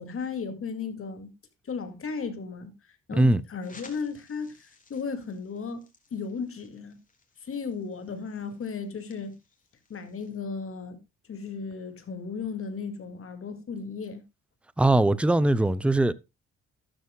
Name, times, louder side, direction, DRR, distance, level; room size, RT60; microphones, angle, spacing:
voice 1, 0.0-1.3 1.7-2.7 3.1-7.0 7.4-9.3 9.9-11.0 11.3-14.2, left 5 dB, 45° left, 2.3 m, -35 dB
voice 2, 3.1-3.4 14.8-16.1, right 1 dB, 5° right, 0.6 m, -21 dB
sound 1, 3.6-10.4, left 3 dB, 25° left, 3.5 m, -57 dB
12.5 x 12.5 x 2.3 m
cardioid pair, 90°, 30 cm